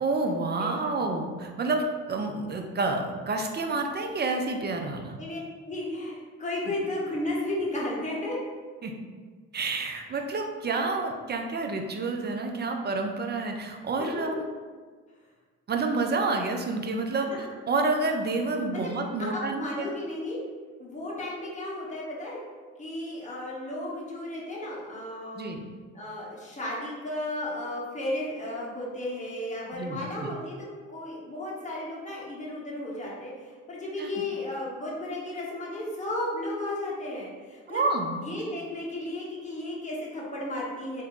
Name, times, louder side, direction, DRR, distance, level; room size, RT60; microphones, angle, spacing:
voice 1, 0.0-5.2 8.8-8.9 9.5-14.5 15.7-19.9 25.4-25.7 29.7-30.3 34.0-34.1 37.7-38.2, right 3 dB, 30° right, 4 dB, 0.6 m, -29 dB
voice 2, 5.2-8.4 14.0-14.1 18.7-20.4 20.8-22.4 22.8-25.5 25.9-37.8 38.2-41.0, left 1 dB, 20° left, -5 dB, 1.5 m, -34 dB
3.4 x 2.8 x 3.6 m, 1.5 s
supercardioid pair, 60°, 33 cm